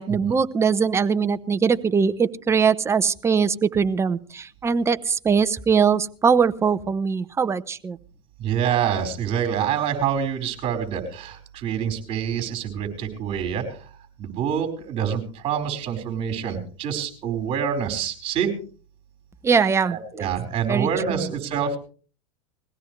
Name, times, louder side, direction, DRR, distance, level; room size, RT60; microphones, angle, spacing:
voice 1, 0.0-8.0 19.4-20.3 20.7-21.3, right 6 dB, 15° right, 11 dB, 0.8 m, -21 dB
voice 2, 8.4-13.8 14.2-18.5 19.9-21.8, right 8 dB, 40° right, 4 dB, 4.7 m, -26 dB
21.0 x 16.5 x 3.3 m, 0.40 s
supercardioid pair, 120°, 15 cm